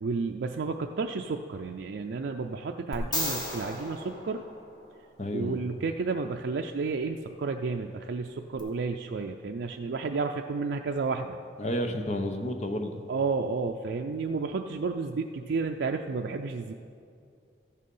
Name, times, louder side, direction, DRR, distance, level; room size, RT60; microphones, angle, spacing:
voice 1, 0.0-4.4 5.3-11.4 13.1-16.7, right 4 dB, 80° right, 3 dB, 0.4 m, -31 dB
sound 1, 2.9-5.2 8.6-8.7, left 1 dB, 25° left, 1.3 m, -35 dB
voice 2, 5.2-5.6 11.6-13.0, left 1 dB, 40° left, 6 dB, 0.8 m, -31 dB
14.0 x 6.6 x 5.4 m, 2.4 s
head